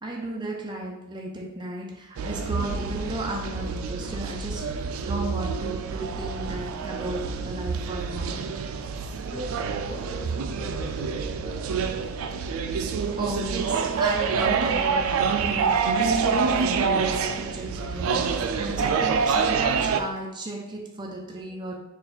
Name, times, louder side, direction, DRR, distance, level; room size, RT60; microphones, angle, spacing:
voice 1, 0.0-8.7 13.2-21.8, right 1 dB, 20° right, 0 dB, 0.6 m, -35 dB
sound 1, 2.2-20.0, right 5 dB, 85° right, 0.3 m, -27 dB
voice 2, 9.3-12.4, equal, 35° left, 0 dB, 0.7 m, -41 dB
4.1 x 2.4 x 4.1 m, 0.90 s
head